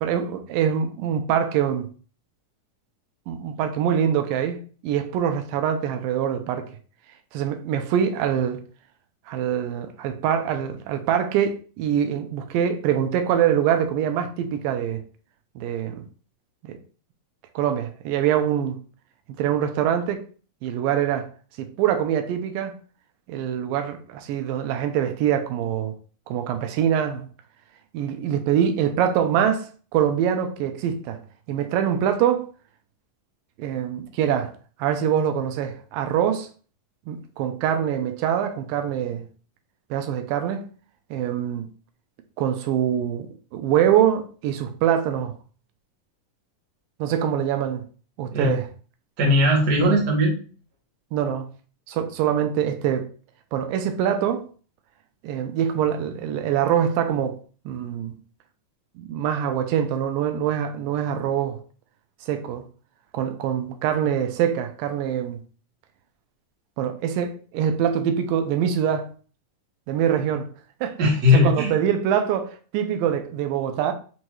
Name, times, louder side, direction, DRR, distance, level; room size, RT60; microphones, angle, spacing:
voice 1, 0.0-1.9 3.3-6.7 7.3-8.6 9.3-15.0 15.6-16.0 16.6-16.8 17.6-18.8 19.4-20.2 20.6-21.3 21.6-22.7 23.3-26.0 26.3-27.3 27.9-31.2 31.5-32.5 33.6-34.5 34.8-36.5 37.1-39.2 39.9-40.7 41.1-41.7 42.4-43.3 43.5-45.3 47.0-47.8 48.2-48.7 51.1-51.5 51.9-53.1 53.5-54.4 55.2-57.4 57.7-58.2 59.0-61.6 62.2-62.6 63.1-65.4 66.8-69.1 69.9-70.5 70.8-71.0 71.3-73.9, right 9 dB, 85° right, 2.2 m, -24 dB
voice 2, 49.2-50.4 71.0-71.7, left 2 dB, 50° right, 1.2 m, -18 dB
6.0 x 2.7 x 3.0 m
omnidirectional pair, 3.9 m